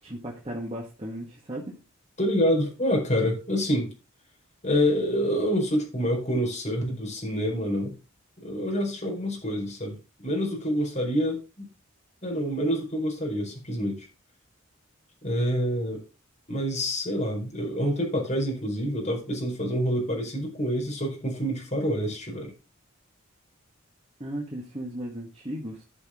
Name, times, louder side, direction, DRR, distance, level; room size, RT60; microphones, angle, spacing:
voice 1, 0.0-1.7 24.2-25.8, right 1 dB, 25° right, -2 dB, 1.9 m, -36 dB
voice 2, 2.2-3.9 4.6-8.0 8.4-11.7 12.2-14.1 15.2-16.0 16.5-22.5, equal, 35° left, 0 dB, 4.7 m, -27 dB
11.5 x 6.5 x 3.8 m, 0.30 s
head